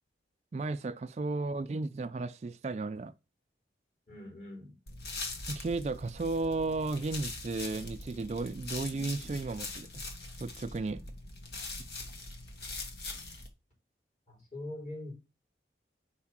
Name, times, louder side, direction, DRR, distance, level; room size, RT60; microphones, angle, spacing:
voice 1, 0.5-3.1 5.5-10.0 10.4-11.0, right 3 dB, 40° right, 0.3 m, -34 dB
voice 2, 4.1-4.8 14.3-15.1, left 1 dB, 45° left, 3.6 m, -43 dB
sound 1, 4.9-13.5, left 2 dB, 65° left, 1.2 m, -42 dB
4.8 x 4.3 x 5.8 m
head